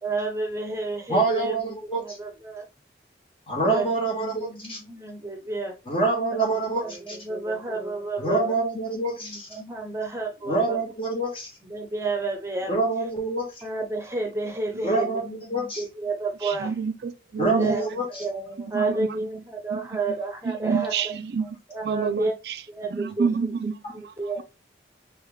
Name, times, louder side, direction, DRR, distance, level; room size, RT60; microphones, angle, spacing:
voice 1, 0.0-2.7 3.7-5.8 6.3-8.6 9.2-10.8 11.6-12.8 13.6-16.8 17.4-21.1 21.4-22.3 22.7-23.5 23.9-24.4, right 3 dB, 15° right, 0.9 m, -31 dB
voice 2, 1.1-2.2 3.5-4.8 5.9-6.8 8.2-9.5 10.5-11.5 12.7-13.4 14.8-15.2 15.5-15.8 17.4-18.0, right 3 dB, 30° left, 1.8 m, -25 dB
voice 3, 16.6-17.7 18.7-18.9 20.6-21.1 21.3-21.4 21.8-22.2 23.0-23.7 24.0-24.1, right 5 dB, 70° right, 0.4 m, -26 dB
4.8 x 3.1 x 3.6 m
head